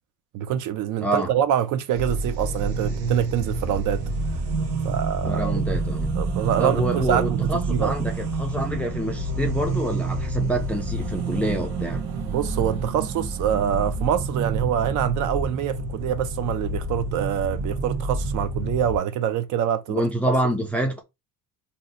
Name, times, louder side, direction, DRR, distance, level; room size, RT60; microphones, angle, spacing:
voice 1, 0.3-4.0 4.8-5.5 6.2-7.4 7.7-7.9 12.3-20.3, right 10 dB, 55° right, 0.5 m, -25 dB
sound 1, 1.9-19.0, right 3 dB, 85° right, 0.9 m, -28 dB
voice 2, 5.2-6.1 6.6-12.0 19.9-21.0, right 1 dB, 5° left, 0.3 m, -27 dB
2.7 x 2.0 x 3.9 m
cardioid pair, 145°, 37 cm